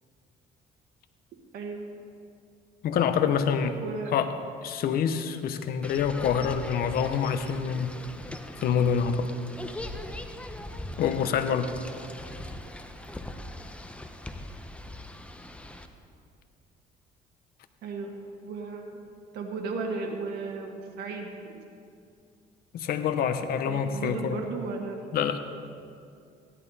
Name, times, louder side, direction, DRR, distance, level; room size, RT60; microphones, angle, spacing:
voice 1, 1.5-1.9 3.8-4.1 17.8-18.1 18.4-19.0 19.3-21.7 23.7-25.0, right 4 dB, 75° right, 1 dB, 1.5 m, -35 dB
voice 2, 2.8-3.8 4.1-4.3 4.6-7.9 8.6-9.3 11.0-11.7 22.7-24.4 25.1-25.4, left 7 dB, 65° left, 9 dB, 0.8 m, -26 dB
sound 1, 5.8-15.9, left 1 dB, 5° left, 0.7 m, -41 dB
15.5 x 11.0 x 4.1 m, 2.4 s
cardioid pair, 110°, 17 cm